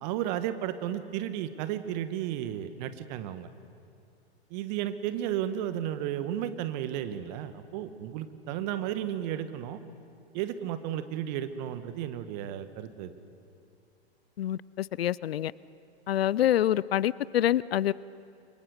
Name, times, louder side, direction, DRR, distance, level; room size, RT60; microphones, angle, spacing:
voice 1, 0.0-3.5 4.5-9.8 10.3-13.1, right 11 dB, 40° right, 11 dB, 1.6 m, -33 dB
voice 2, 14.4-15.5 16.1-17.9, left 12 dB, 65° left, 21 dB, 0.6 m, -26 dB
28.5 x 24.5 x 6.7 m, 2.5 s
figure-of-eight pair, 105°, 33 cm